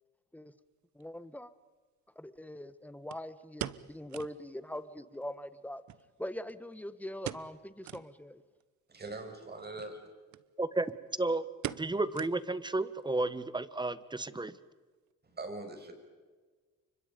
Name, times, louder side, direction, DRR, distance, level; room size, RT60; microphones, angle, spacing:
voice 1, 0.9-1.5 2.1-5.8 6.2-8.4, left 1 dB, 5° left, 12 dB, 1.5 m, -42 dB
sound 1, 1.0-1.1 3.1-4.4 4.8-4.9 5.1-5.2 5.9-6.7 7.2-7.6 7.8-8.1 8.6-8.7 9.7-9.9 10.3-10.4 10.7-11.1 11.6-12.7 13.0-13.1 13.7-14.0 14.3-14.4, right 12 dB, 70° right, 1.0 m, -42 dB
voice 2, 8.9-10.1 15.3-15.9, right 2 dB, 35° right, 5 dB, 6.4 m, -42 dB
voice 3, 10.6-10.9 11.2-11.5 11.8-14.5, right 2 dB, 15° right, 15 dB, 1.3 m, -32 dB
30.0 x 25.0 x 5.3 m, 1.4 s
cardioid pair, 90°, 30 cm